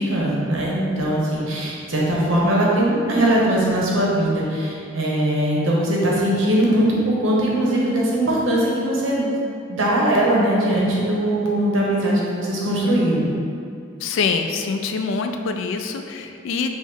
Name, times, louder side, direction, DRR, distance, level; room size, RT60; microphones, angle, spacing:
voice 1, 0.0-9.3 9.7-13.3, right 1 dB, 90° right, -4 dB, 0.9 m, -20 dB
voice 2, 14.0-16.8, left 5 dB, 80° left, 6 dB, 0.3 m, -25 dB
5.3 x 2.0 x 3.5 m, 2.5 s
head